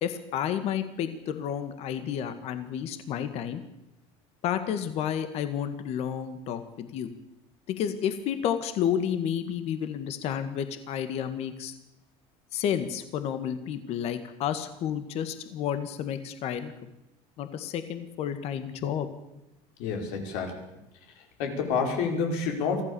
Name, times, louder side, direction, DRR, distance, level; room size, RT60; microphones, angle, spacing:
voice 1, 0.0-3.6 4.4-7.1 7.7-11.7 12.5-16.7 17.4-19.1, left 9 dB, 55° left, 10 dB, 1.8 m, -31 dB
voice 2, 19.8-20.6 21.4-22.8, left 5 dB, 80° left, 3 dB, 5.2 m, -28 dB
24.0 x 15.5 x 7.0 m, 0.91 s
cardioid pair, 140°, 13 cm